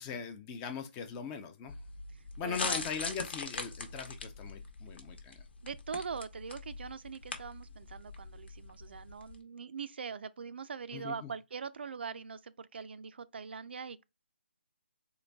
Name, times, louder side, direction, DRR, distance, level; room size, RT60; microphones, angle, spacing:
voice 1, 0.0-1.8 2.4-5.4 10.9-11.3, left 6 dB, 15° left, 0.4 m, -40 dB
sound 1, 1.7-9.4, left 3 dB, 70° left, 1.0 m, -42 dB
voice 2, 2.4-2.8 5.6-14.0, right 6 dB, 65° right, 0.3 m, -42 dB
3.8 x 2.2 x 3.4 m
hypercardioid pair, 160°, 6 cm